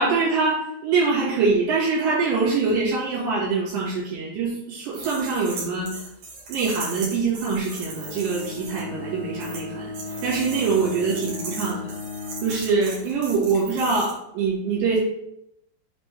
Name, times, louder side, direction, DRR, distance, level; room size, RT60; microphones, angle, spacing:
voice 1, 0.0-5.9 6.5-9.9 10.2-11.9 12.4-15.0, right 4 dB, 75° right, -8 dB, 3.9 m, -24 dB
sound 1, 4.9-8.8 9.3-9.6 9.9-14.1, right 3 dB, 55° right, 2.7 m, -37 dB
Bowed string instrument, 7.8-12.7, left 3 dB, 75° left, 2.2 m, -36 dB
8.0 x 3.4 x 3.5 m, 0.80 s
omnidirectional pair, 5.2 m